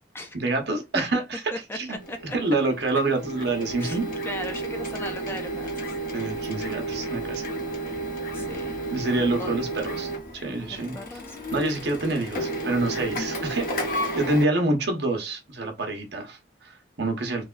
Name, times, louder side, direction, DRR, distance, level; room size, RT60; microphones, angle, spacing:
voice 1, 0.3-1.4 1.7-2.0 2.3-4.1 6.1-7.5 8.9-10.1 10.4-11.0 11.5-17.4, right 2 dB, 60° right, 0.8 m, -27 dB
voice 2, 1.5-2.4 3.8-4.0 4.2-5.9 8.3-8.7 9.4-9.6 10.7-11.4, equal, 10° left, 0.3 m, -37 dB
Printer, 2.0-14.5, right 1 dB, 50° left, 0.8 m, -32 dB
3.3 x 2.2 x 2.4 m
head